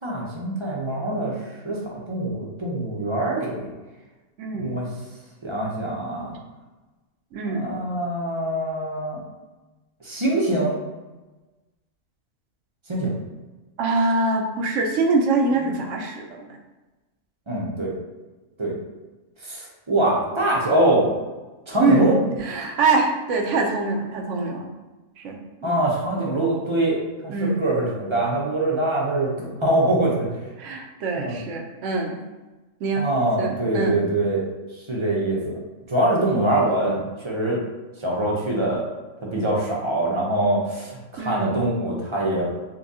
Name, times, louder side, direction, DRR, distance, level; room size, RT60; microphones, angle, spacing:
voice 1, 0.0-1.4 1.6-3.7 4.5-4.9 5.4-6.4 7.5-9.2 10.0-10.8 12.9-13.1 17.5-17.9 18.6-18.7 19.4-21.1 21.7-22.2 25.6-30.3 31.2-31.3 33.0-34.5 34.7-35.6 35.9-37.6 38.0-38.8 39.2-42.5, right 1 dB, 30° right, -4 dB, 0.6 m, -24 dB
voice 2, 7.3-7.7 13.8-16.5 21.8-22.1 22.4-24.7 25.2-25.8 27.3-27.6 30.6-32.2 32.8-33.1 33.4-34.0 41.2-41.6, right 3 dB, 70° right, 2 dB, 1.0 m, -24 dB
5.5 x 2.2 x 2.7 m, 1.2 s
omnidirectional pair, 1.4 m